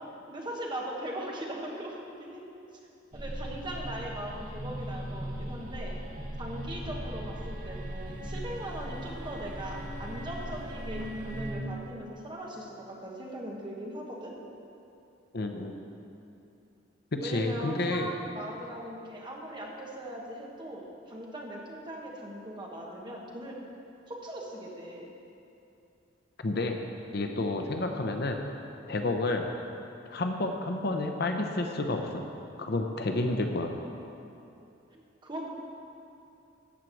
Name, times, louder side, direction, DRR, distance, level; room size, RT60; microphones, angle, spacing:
voice 1, 0.3-2.4 3.1-6.0 6.4-14.3 17.2-23.6 24.1-25.1 34.9-35.5, right 1 dB, 25° right, -2 dB, 1.4 m, -40 dB
sound 1, 3.1-11.5, equal, 40° right, 1.7 m, -38 dB
voice 2, 15.3-15.7 17.1-18.1 26.4-26.7 27.1-28.4 28.9-29.5 30.1-32.2 32.6-33.7, left 2 dB, 55° left, 4 dB, 0.8 m, -30 dB
13.0 x 4.6 x 7.7 m, 2.8 s
head